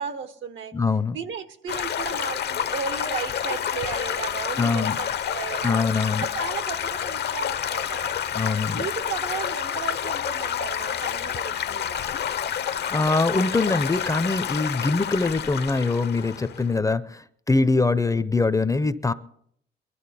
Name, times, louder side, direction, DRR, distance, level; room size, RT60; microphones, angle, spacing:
voice 1, 0.0-0.8 1.1-5.7 6.2-8.2 8.7-12.1 15.2-15.4, right 7 dB, 75° right, 10 dB, 1.3 m, -35 dB
voice 2, 0.7-1.2 4.6-5.0 5.6-6.3 8.3-8.8 12.9-19.1, left 3 dB, 15° left, 13 dB, 0.6 m, -23 dB
Stream / Gurgling / Trickle dribble, 1.7-16.8, left 9 dB, 55° left, 0.7 m, -29 dB
20.5 x 12.5 x 4.2 m, 0.68 s
cardioid pair, 90°, 20 cm